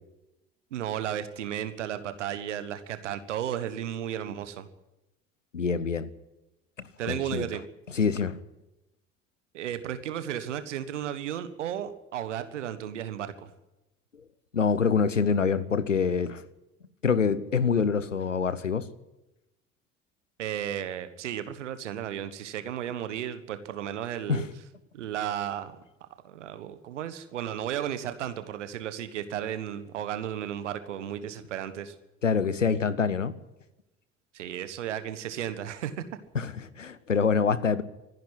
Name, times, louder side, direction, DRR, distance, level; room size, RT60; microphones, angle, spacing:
voice 1, 0.7-4.7 7.0-7.6 9.5-13.5 20.4-24.5 24.9-31.9 34.3-36.0, right 10 dB, 75° right, 1.5 m, -34 dB
voice 2, 5.5-6.1 7.1-7.5 7.9-8.4 14.5-16.4 17.0-18.9 24.3-24.4 32.2-33.4 36.3-37.8, left 5 dB, 90° left, 0.8 m, -25 dB
24.5 x 11.0 x 9.9 m
figure-of-eight pair, 55°, 36 cm